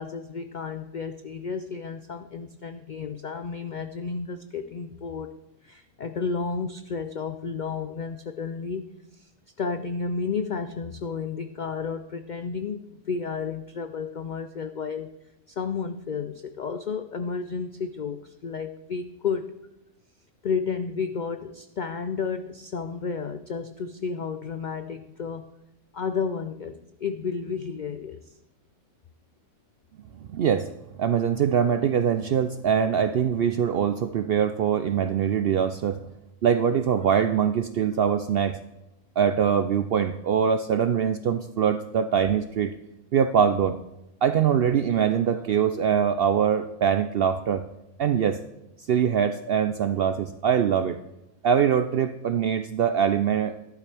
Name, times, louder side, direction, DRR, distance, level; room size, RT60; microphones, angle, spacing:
voice 1, 0.0-5.3 5.6-8.9 9.1-9.3 9.6-15.1 15.5-19.6 20.4-25.5 25.9-28.4, left 5 dB, 75° left, 9 dB, 0.4 m, -32 dB
voice 2, 30.3-30.7 31.0-36.0 36.4-38.6 39.2-42.7 43.1-43.8 44.2-47.6 48.0-48.4 48.9-51.0 51.4-53.5, right 8 dB, 70° right, 10 dB, 0.5 m, -23 dB
13.0 x 11.5 x 3.4 m, 0.90 s
omnidirectional pair, 1.5 m